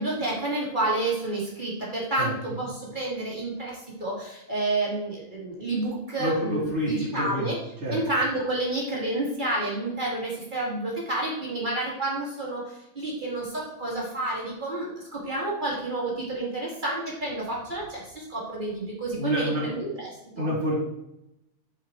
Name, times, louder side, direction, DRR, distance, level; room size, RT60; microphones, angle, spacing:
voice 1, 0.0-7.6 7.9-20.5, right 2 dB, 40° right, -5 dB, 2.3 m, -30 dB
voice 2, 6.2-7.5 7.8-8.0 19.2-19.7 20.3-20.8, equal, 60° right, -4 dB, 3.2 m, -28 dB
10.5 x 4.5 x 4.4 m, 0.85 s
omnidirectional pair, 1.3 m